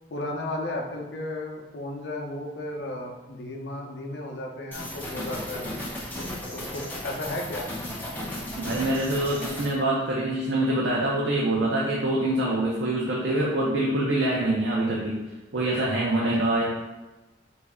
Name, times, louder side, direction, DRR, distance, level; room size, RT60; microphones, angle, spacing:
voice 1, 0.1-5.8 6.1-7.7 16.2-16.5, left 1 dB, 65° left, 1 dB, 0.6 m, -34 dB
sound 1, 4.7-9.7, left 1 dB, 10° left, 0.9 m, -35 dB
voice 2, 8.6-15.2 15.5-16.6, right 1 dB, 70° right, -4 dB, 0.6 m, -25 dB
3.2 x 2.6 x 3.5 m, 1.2 s
head